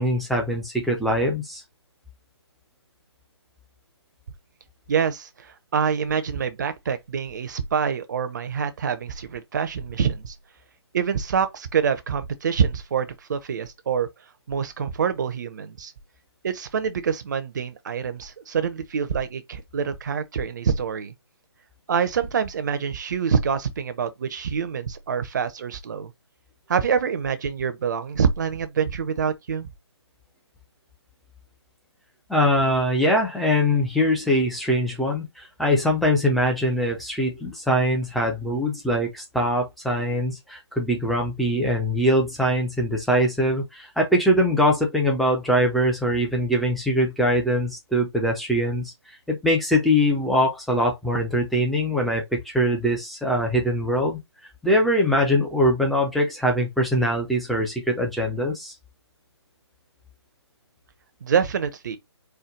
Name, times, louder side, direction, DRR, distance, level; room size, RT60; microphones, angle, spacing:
voice 1, 0.0-1.6 32.3-54.2 54.6-58.8, equal, ahead, 0.6 m, -22 dB
voice 2, 4.9-10.4 10.9-14.1 14.5-15.9 16.4-21.1 21.9-26.1 26.7-29.7 61.2-62.0, right 6 dB, 40° right, 0.7 m, -26 dB
4.5 x 2.2 x 3.7 m
figure-of-eight pair, 145°, 14 cm